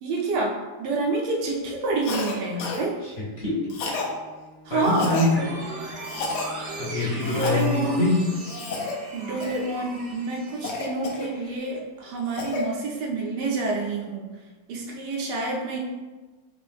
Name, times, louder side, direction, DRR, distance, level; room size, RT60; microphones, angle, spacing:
voice 1, 0.0-2.9 4.6-5.1 7.3-8.1 9.1-14.2 14.7-15.8, right 3 dB, 80° right, -1 dB, 1.3 m, -28 dB
Cough, 2.0-2.3 2.6-2.8 3.7-4.1 4.8-5.3 6.0-6.5 7.2-7.7 8.4-8.9 9.4-9.7 10.6-11.6 12.0-12.6, left 4 dB, 85° left, 1.2 m, -31 dB
voice 2, 3.0-3.6 4.7-5.5 6.8-8.2, left 2 dB, 50° left, -7 dB, 0.8 m, -24 dB
Bowed string instrument, 3.0-7.8, left 1 dB, 45° right, 0.7 m, -48 dB
sound 1, 5.4-11.6, right 2 dB, 60° right, 1.1 m, -38 dB
3.8 x 2.6 x 3.4 m, 1.3 s
omnidirectional pair, 1.8 m